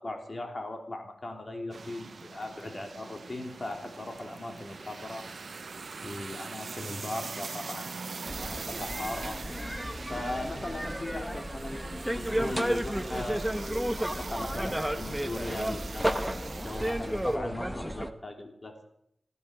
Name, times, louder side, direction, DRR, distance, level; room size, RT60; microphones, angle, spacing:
voice 1, 0.0-5.3 6.0-9.4 10.1-16.2 16.6-18.7, left 2 dB, 40° left, 3 dB, 3.2 m, -38 dB
sound 1, 1.7-17.4, right 4 dB, 65° right, 0.6 m, -42 dB
sound 2, 3.2-9.1, left 2 dB, 85° left, 4.4 m, -59 dB
sound 3, 8.3-18.1, equal, 5° right, 1.1 m, -32 dB
20.0 x 14.5 x 5.1 m, 0.75 s
cardioid pair, 65°, 0 cm